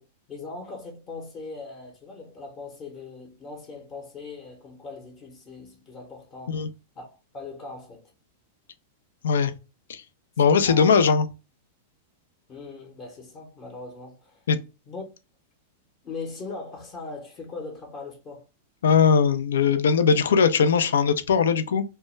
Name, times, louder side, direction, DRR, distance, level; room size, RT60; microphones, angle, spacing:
voice 1, 0.0-6.7 7.0-7.1 7.3-8.1 10.5-10.9 12.5-14.4 14.9-15.0 16.0-18.5, left 3 dB, 35° left, 0.7 m, -40 dB
voice 2, 10.4-11.3 14.5-14.6 18.8-21.8, left 6 dB, 80° left, 0.3 m, -20 dB
2.1 x 2.1 x 3.1 m
hypercardioid pair, 120°, 0 cm